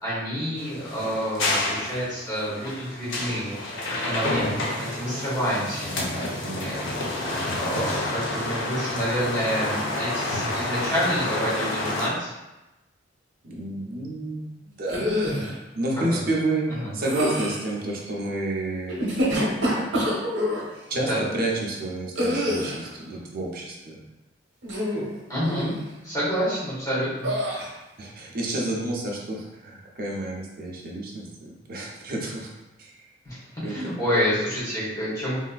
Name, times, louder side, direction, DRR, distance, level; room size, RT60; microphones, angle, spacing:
voice 1, 0.0-3.5 3.8-12.3 15.3-15.5 16.1-16.2 16.8-16.9 20.9-21.2 25.3-25.7 26.0-27.3 33.2-35.4, equal, 20° left, -10 dB, 1.5 m, -28 dB
sound 1, 0.6-12.1, left 2 dB, 90° left, 0.7 m, -29 dB
voice 2, 6.2-6.7 13.4-19.4 20.5-20.6 20.9-24.0 28.0-32.5 32.8-33.1 33.6-33.9, right 2 dB, 50° right, -2 dB, 0.6 m, -30 dB
sound 2, 14.9-15.5 17.0-17.7 18.9-20.6 22.2-22.9 24.6-25.1 25.5-25.8 27.2-27.7, equal, 85° right, 0.8 m, -26 dB
3.3 x 2.7 x 2.3 m, 1.0 s
head